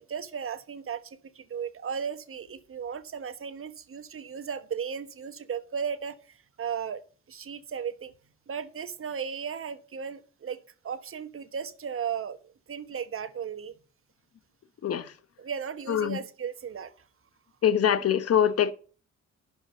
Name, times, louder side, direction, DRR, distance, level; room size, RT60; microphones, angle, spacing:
voice 1, 0.0-7.0 7.3-8.1 8.5-10.6 10.8-12.4 12.7-13.7 15.4-16.9, right 7 dB, 45° right, 1.3 m, -35 dB
voice 2, 17.6-18.7, left 9 dB, 50° left, 1.0 m, -23 dB
11.5 x 5.1 x 6.7 m
cardioid pair, 90°, 30 cm